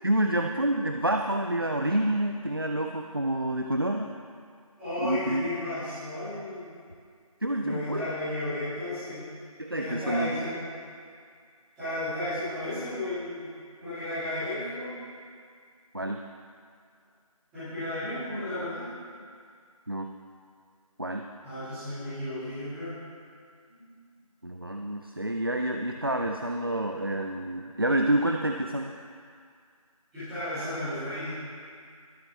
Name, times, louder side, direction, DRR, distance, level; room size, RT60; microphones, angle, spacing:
voice 1, 0.0-4.1 5.0-5.5 7.4-8.0 9.6-10.4 15.9-16.2 19.9-20.1 21.0-21.2 24.4-29.0, right 1 dB, 40° right, 4 dB, 0.5 m, -28 dB
voice 2, 4.8-6.7 7.6-9.3 9.7-10.6 11.8-13.4 13.8-14.9 17.5-18.8 21.4-22.9 23.7-23.9 30.1-31.4, left 1 dB, ahead, -24 dB, 2.4 m, -33 dB
21.5 x 8.5 x 3.4 m, 2.2 s
figure-of-eight pair, 175°, 19 cm